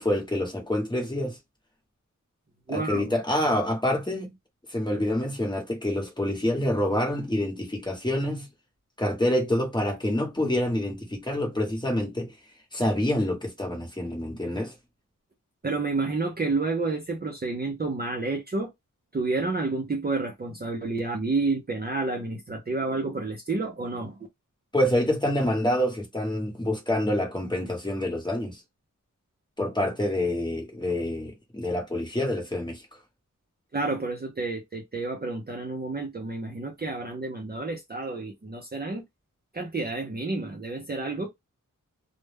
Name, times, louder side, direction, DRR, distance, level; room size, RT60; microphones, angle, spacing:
voice 1, 0.0-1.4 2.7-4.3 4.7-8.5 9.0-12.3 12.7-14.7 24.7-28.6 29.6-32.8, left 1 dB, 15° left, 1.0 m, -27 dB
voice 2, 2.7-3.0 15.6-18.7 19.1-24.2 33.7-39.0 39.5-41.3, right 3 dB, 30° right, 0.5 m, -30 dB
2.2 x 2.0 x 3.3 m
wide cardioid pair, 110°, 32 cm